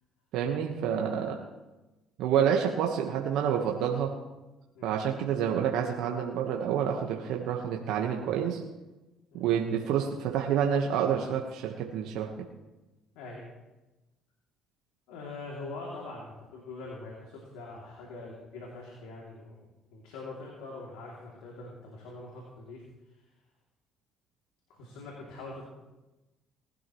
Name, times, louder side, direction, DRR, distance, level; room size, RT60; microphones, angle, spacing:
voice 1, 0.3-1.4 2.2-4.1 4.8-8.6 9.3-12.3, right 8 dB, 75° right, 1 dB, 1.3 m, -28 dB
voice 2, 15.1-19.5 19.9-22.8 24.7-25.6, left 3 dB, 80° left, -2 dB, 2.8 m, -43 dB
19.5 x 12.0 x 3.1 m, 1.1 s
supercardioid pair, 75°, 0 cm